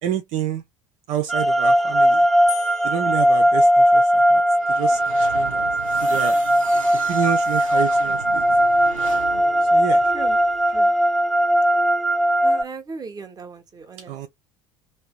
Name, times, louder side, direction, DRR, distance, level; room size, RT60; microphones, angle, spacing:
voice 1, 0.0-0.6 1.1-2.2 2.8-4.4 4.7-5.7 6.0-6.4 7.1-8.4 9.7-10.0 14.1-14.3, right 10 dB, 45° right, 0.6 m, -28 dB
sound 1, 1.3-12.6, equal, ahead, 0.3 m, -19 dB
sound 2, 2.5-4.3, left 7 dB, 20° left, 0.9 m, -38 dB
sound 3, 4.5-10.8, right 4 dB, 85° right, 0.7 m, -38 dB
voice 2, 10.0-10.4 10.7-10.9 12.4-14.2, right 4 dB, 25° right, 1.1 m, -37 dB
3.2 x 2.7 x 2.5 m
figure-of-eight pair, 70°, 17 cm